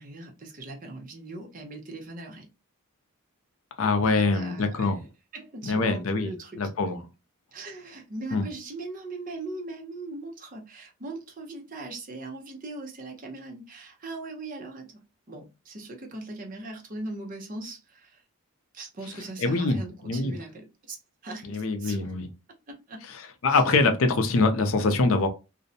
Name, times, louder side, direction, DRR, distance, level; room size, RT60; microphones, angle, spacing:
voice 1, 0.0-2.5 4.0-4.9 5.3-6.7 7.5-15.0 15.3-18.2 18.7-21.0 21.2-22.1 22.7-23.0 23.5-23.6, right 2 dB, 40° right, 0.6 m, -40 dB
voice 2, 3.8-5.0 5.7-6.3 6.6-7.0 8.3-8.5 19.4-20.4 21.4-22.3 23.4-25.3, left 3 dB, 70° left, 0.5 m, -24 dB
2.5 x 2.1 x 2.6 m
head